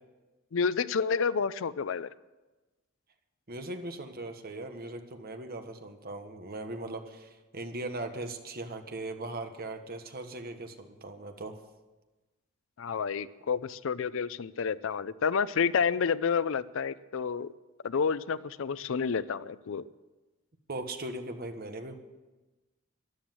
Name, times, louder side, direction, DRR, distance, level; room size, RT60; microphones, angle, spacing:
voice 1, 0.5-2.1 12.8-17.5 17.8-19.8, left 6 dB, 65° left, 17 dB, 0.5 m, -29 dB
voice 2, 3.5-11.5 20.7-21.9, right 2 dB, 50° right, 6 dB, 1.4 m, -39 dB
13.0 x 11.5 x 7.6 m, 1.2 s
head